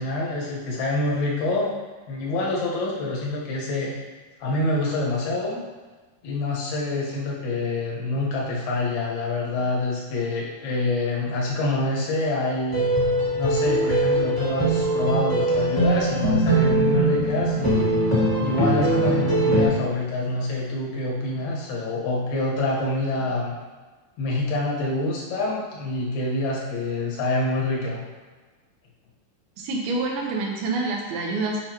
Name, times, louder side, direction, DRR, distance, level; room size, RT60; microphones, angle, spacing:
voice 1, 0.0-1.7 2.1-4.0 4.4-5.6 6.2-12.9 13.4-18.0 18.4-23.5 24.2-28.0, left 2 dB, 80° left, -4 dB, 3.2 m, -26 dB
sound 1, 12.7-19.7, right 1 dB, 20° left, 0.5 m, -21 dB
voice 2, 29.6-31.6, right 3 dB, 80° right, 0 dB, 2.9 m, -27 dB
8.2 x 5.9 x 3.0 m, 1.3 s
omnidirectional pair, 4.3 m